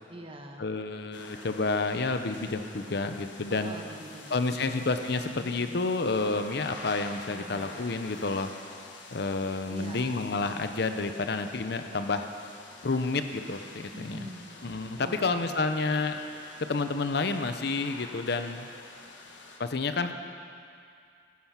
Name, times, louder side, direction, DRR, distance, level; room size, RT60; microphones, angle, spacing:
voice 1, 0.1-0.7 3.5-4.8 5.4-5.9 7.3-7.8 9.7-10.3 13.9-14.6 15.0-16.1, right 1 dB, 30° right, 2 dB, 1.2 m, -45 dB
voice 2, 0.6-3.7 4.3-8.5 9.1-12.3 12.8-14.3 14.6-16.2 16.7-18.7 19.6-20.1, left 3 dB, 60° left, 8 dB, 0.7 m, -30 dB
sound 1, 1.1-19.6, left 3 dB, 80° left, 1.5 m, -47 dB
15.5 x 10.5 x 5.8 m, 2.4 s
head